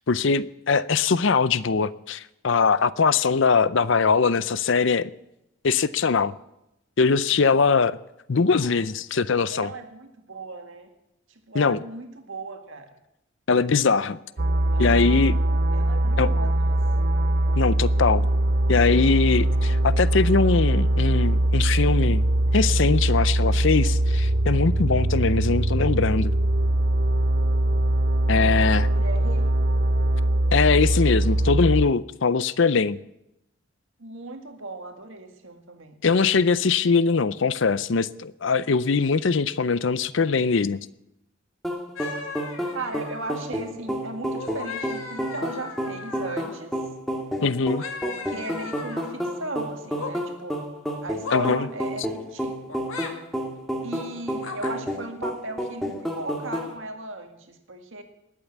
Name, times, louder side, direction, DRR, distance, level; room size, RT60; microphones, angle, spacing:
voice 1, 0.1-5.1 5.6-6.3 7.0-8.0 8.3-9.7 11.5-11.8 13.5-14.2 14.8-15.4 16.2-16.3 17.6-18.2 18.7-22.3 22.5-26.3 28.3-28.9 30.5-33.0 36.0-40.8 47.4-47.9 51.3-51.7, left 5 dB, 60° left, 0.6 m, -21 dB
voice 2, 9.5-10.9 11.5-12.9 14.7-14.9 15.7-16.7 28.8-29.5 34.0-36.0 42.7-46.7 48.0-50.6 51.0-52.8 53.8-58.0, right 2 dB, 65° right, 2.0 m, -37 dB
sound 1, 14.4-31.9, right 1 dB, 45° right, 0.6 m, -22 dB
sound 2, 41.6-56.7, equal, ahead, 1.9 m, -31 dB
sound 3, 42.0-43.6 44.2-46.6 47.8-49.2 49.8-50.1 51.2-51.5 52.7-53.1 54.4-54.8, left 5 dB, 80° left, 1.8 m, -37 dB
20.0 x 8.7 x 7.3 m
head